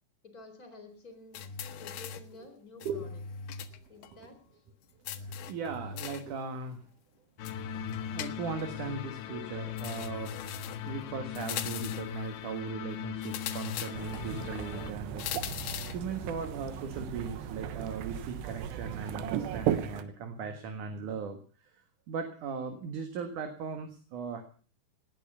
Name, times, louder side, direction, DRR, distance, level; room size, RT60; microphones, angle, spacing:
voice 1, 0.2-1.4 1.8-3.1 3.9-4.4, left 3 dB, 20° left, 7 dB, 3.8 m, -50 dB
sound 1, 1.3-2.3 2.8-3.8 4.0-4.1 5.1-6.3 7.5-8.7 9.8-10.9 11.4-12.2 13.2-14.3 15.2-16.1, left 7 dB, 70° left, 2.8 m, -39 dB
voice 2, 5.5-6.8 7.6-10.3 10.9-15.2 15.9-21.4 22.1-24.4, right 5 dB, 55° right, 6 dB, 2.8 m, -38 dB
sound 2, 7.4-14.9, left 11 dB, 90° left, 3.3 m, -40 dB
sound 3, 13.9-20.0, right 10 dB, 85° right, 3.3 m, -36 dB
19.0 x 10.5 x 6.9 m, 0.41 s
omnidirectional pair, 4.8 m